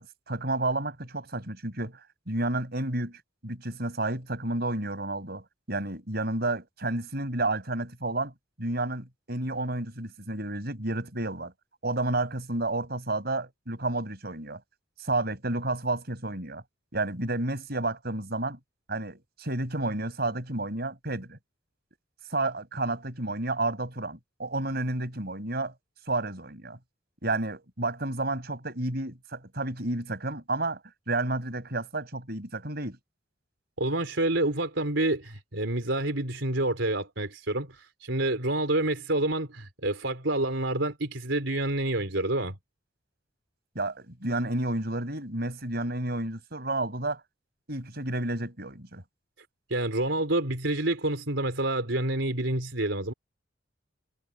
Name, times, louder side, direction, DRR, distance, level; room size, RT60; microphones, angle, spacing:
voice 1, 0.0-2.0 2.3-8.3 8.6-11.5 11.8-14.6 15.0-16.6 16.9-18.6 18.9-21.4 22.3-25.7 26.1-26.8 27.2-30.8 31.1-33.0 43.8-47.2 47.7-49.0, right 2 dB, 55° right, 5.7 m, -31 dB
voice 2, 33.8-42.6 49.7-53.1, right 2 dB, 75° right, 4.1 m, -28 dB
head